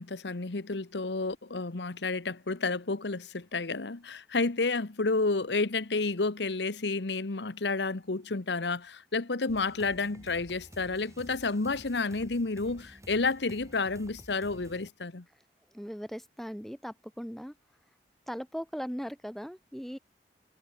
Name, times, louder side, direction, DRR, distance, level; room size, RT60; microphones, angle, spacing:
voice 1, 0.0-15.2, left 3 dB, 80° left, 1.1 m, -30 dB
sound 1, 9.5-14.9, equal, 15° right, 4.8 m, -51 dB
voice 2, 15.7-17.5 18.3-20.0, equal, ahead, 1.5 m, -38 dB
head